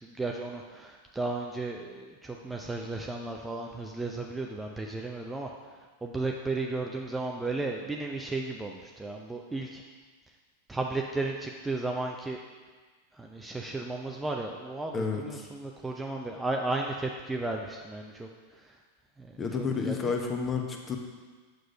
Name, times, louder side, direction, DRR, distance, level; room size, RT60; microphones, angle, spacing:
voice 1, 0.0-5.5 6.0-9.8 10.7-12.4 13.1-18.3 19.2-19.3 19.6-20.1, right 2 dB, 10° right, 1 dB, 0.7 m, -34 dB
voice 2, 14.9-15.4 19.4-21.0, left 5 dB, 20° left, 2 dB, 1.1 m, -30 dB
8.0 x 6.4 x 5.3 m, 1.4 s
figure-of-eight pair, 90°, 0 cm